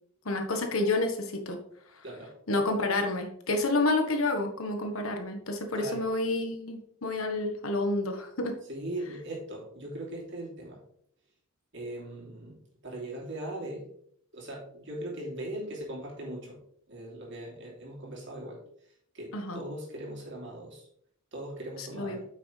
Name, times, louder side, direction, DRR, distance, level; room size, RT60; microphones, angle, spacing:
voice 1, 0.2-1.6 2.5-8.6 19.3-19.6 21.8-22.2, left 2 dB, 85° left, 4 dB, 1.4 m, -29 dB
voice 2, 2.0-2.3 5.7-6.0 8.7-10.8 11.7-13.9 14.3-16.6 16.9-18.6 19.1-20.9 21.3-22.3, right 1 dB, 60° right, -3 dB, 3.0 m, -39 dB
8.8 x 6.1 x 3.3 m, 0.66 s
head